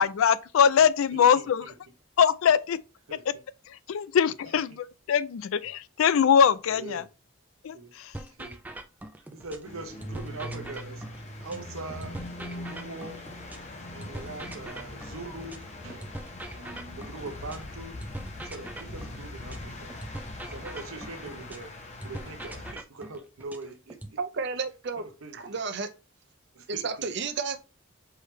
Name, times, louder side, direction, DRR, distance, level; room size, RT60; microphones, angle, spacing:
voice 1, 0.0-1.7 2.2-2.8 3.9-7.0 7.6-7.8, left 7 dB, 75° left, 0.3 m, -22 dB
voice 2, 1.1-1.7 3.1-3.2 6.7-7.1 7.7-7.9 8.4-8.6 9.3-11.0 11.4-13.2 13.9-16.1 16.5-18.0 18.4-19.9 20.4-21.7 22.0-24.2 25.0-25.4 26.5-26.9, right 2 dB, 80° right, 0.8 m, -42 dB
sound 1, 8.1-9.7 10.0-13.7 14.0-17.7 18.0-21.7 22.0-24.1, right 1 dB, 10° right, 0.3 m, -42 dB
sound 2, 9.6-22.7, left 1 dB, 30° left, 0.8 m, -41 dB
voice 3, 24.2-25.0 25.3-25.9 26.7-27.6, right 5 dB, 55° right, 0.6 m, -31 dB
4.7 x 3.3 x 3.1 m
head